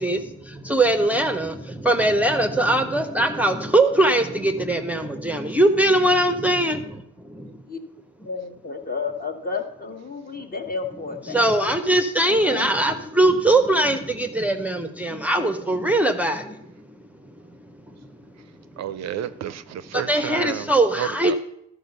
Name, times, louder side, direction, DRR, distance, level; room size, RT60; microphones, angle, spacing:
voice 1, 0.0-7.6 11.3-16.7 19.9-21.4, right 1 dB, 5° right, 6 dB, 0.6 m, -21 dB
voice 2, 8.2-11.4 12.3-12.7, left 4 dB, 30° left, 5 dB, 1.2 m, -31 dB
voice 3, 18.8-20.6 21.0-21.4, right 11 dB, 60° right, 14 dB, 0.5 m, -31 dB
12.0 x 4.9 x 5.3 m, 0.77 s
cardioid pair, 90°, 30 cm